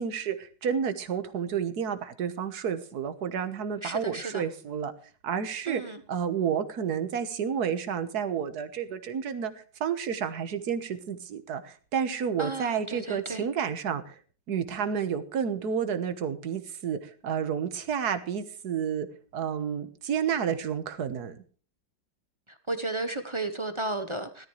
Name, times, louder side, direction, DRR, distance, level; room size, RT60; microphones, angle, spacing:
voice 1, 0.0-4.9 5.2-9.5 9.8-14.1 14.5-19.1 19.3-21.4, right 7 dB, 55° right, 1.7 m, -30 dB
voice 2, 3.8-4.4 5.7-6.0 12.4-13.5 22.7-24.5, right 2 dB, 25° right, 0.6 m, -33 dB
17.5 x 13.0 x 3.2 m
omnidirectional pair, 2.1 m